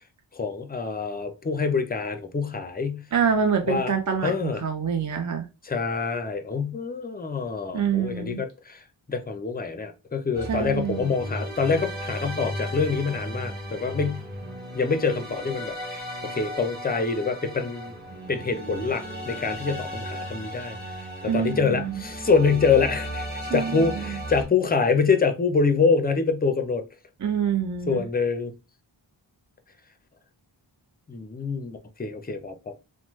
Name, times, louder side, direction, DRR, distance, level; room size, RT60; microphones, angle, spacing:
voice 1, 0.3-3.0 3.6-3.9 4.2-4.6 5.6-8.8 9.1-14.2 14.7-17.9 18.3-20.8 21.2-26.8 27.9-28.5 31.1-32.7, left 5 dB, 20° left, 0.4 m, -25 dB
voice 2, 3.1-5.5 7.7-8.4 10.5-11.1 21.2-22.0 23.4-24.2 27.2-28.0, right 7 dB, 40° right, 0.4 m, -26 dB
sound 1, 10.3-24.4, equal, 20° right, 1.2 m, -35 dB
3.0 x 2.1 x 3.0 m
wide cardioid pair, 40°, 47 cm